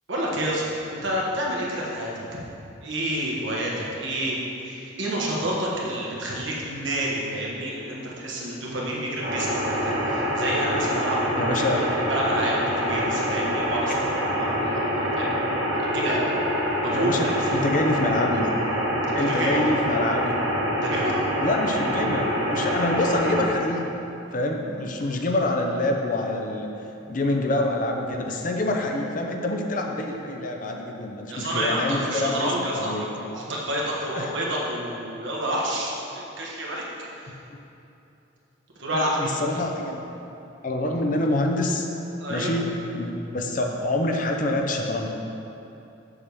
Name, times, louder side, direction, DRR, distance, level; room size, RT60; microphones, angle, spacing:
voice 1, 0.1-0.6 0.9-2.1 2.8-4.3 4.6-11.2 11.7-13.9 14.4-15.3 15.9-16.3 16.8-17.4 19.4-19.6 20.8-21.2 31.3-36.8 38.8-39.3 42.2-42.5, right 1 dB, 75° right, -4 dB, 1.4 m, -29 dB
sound 1, 9.2-23.5, equal, 55° right, 1.7 m, -26 dB
voice 2, 11.4-11.8 16.9-18.5 19.1-20.4 21.4-23.9 24.3-26.7 27.1-33.0 34.1-34.3 37.3-37.4 38.9-40.1 40.6-41.9 42.3-45.1, left 1 dB, 45° left, 2 dB, 0.6 m, -26 dB
7.0 x 7.0 x 3.4 m, 2.9 s
head